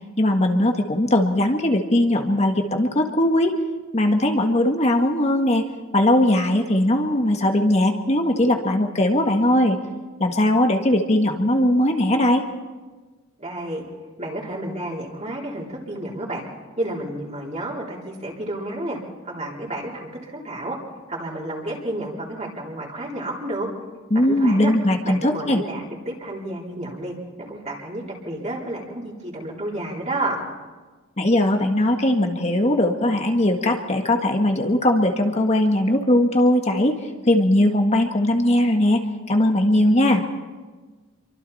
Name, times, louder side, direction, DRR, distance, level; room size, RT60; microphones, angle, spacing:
voice 1, 0.2-3.6 3.9-5.6 5.9-9.8 10.2-12.4 24.1-25.6 31.2-37.0 37.3-39.0 39.3-40.2, left 1 dB, 30° left, 4 dB, 1.7 m, -19 dB
voice 2, 13.4-13.9 14.2-16.4 16.8-19.0 19.2-20.8 21.1-23.7 24.1-24.7 25.0-30.4, right 1 dB, 35° right, -3 dB, 3.8 m, -31 dB
27.5 x 24.0 x 4.3 m, 1.3 s
head